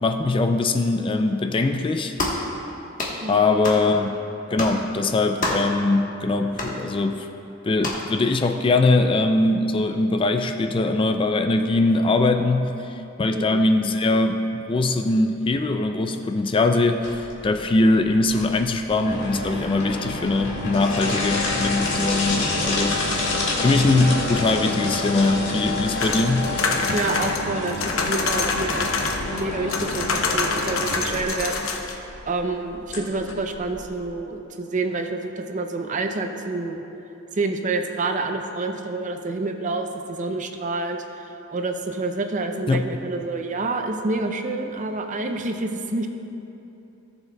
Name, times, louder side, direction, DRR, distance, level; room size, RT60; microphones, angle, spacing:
voice 1, 0.0-2.1 3.3-4.1 4.5-7.3 7.6-26.5 26.9-27.0 42.7-43.0, left 2 dB, 25° left, 7 dB, 0.3 m, -22 dB
sound 1, 2.2-2.5 3.0-3.2 3.6-3.9 4.6-4.8 5.4-5.7 6.6-6.8 7.8-8.1, left 2 dB, 40° left, 1.2 m, -27 dB
sound 2, 17.0-34.1, left 2 dB, 60° left, 1.7 m, -28 dB
sound 3, 26.0-29.4 29.7-31.9, left 4 dB, 80° left, 0.8 m, -26 dB
voice 2, 26.9-29.0 29.3-31.6 32.2-36.8 37.3-46.1, right 3 dB, 40° right, 5 dB, 0.6 m, -28 dB
17.0 x 7.1 x 2.3 m, 2.9 s
head